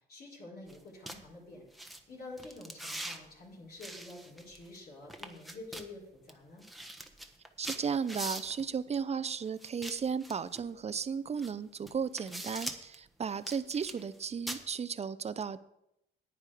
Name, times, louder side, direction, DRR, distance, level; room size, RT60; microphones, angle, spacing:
voice 1, 0.1-6.6, left 2 dB, 50° left, -4 dB, 4.1 m, -48 dB
sound 1, 0.7-0.8 1.1-1.2 1.7-2.0 2.4-3.2 3.8-4.8 5.1-5.9 6.3-6.4 6.6-8.6 9.6-10.6 11.4-11.5 11.9-13.0 13.4-14.2 14.5-14.6, right 1 dB, ahead, 1.2 m, -42 dB
voice 2, 7.6-15.6, right 6 dB, 35° right, 15 dB, 0.6 m, -35 dB
9.8 x 9.4 x 5.0 m, 0.83 s
cardioid pair, 90°, 20 cm